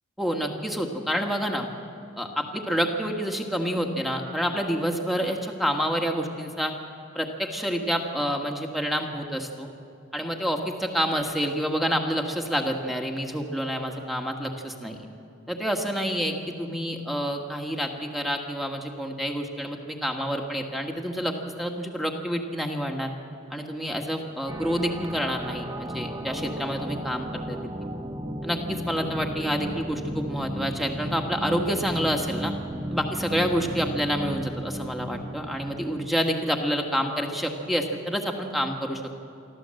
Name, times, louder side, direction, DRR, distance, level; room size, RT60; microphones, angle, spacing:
voice 1, 0.2-1.7 2.2-6.7 7.1-9.7 10.1-15.1 15.5-23.1 23.5-27.6 28.4-32.5 32.9-39.0, equal, ahead, 2 dB, 1.6 m, -28 dB
sound 1, 24.5-36.2, right 1 dB, 20° right, 0.8 m, -34 dB
24.0 x 14.5 x 7.7 m, 2.6 s
head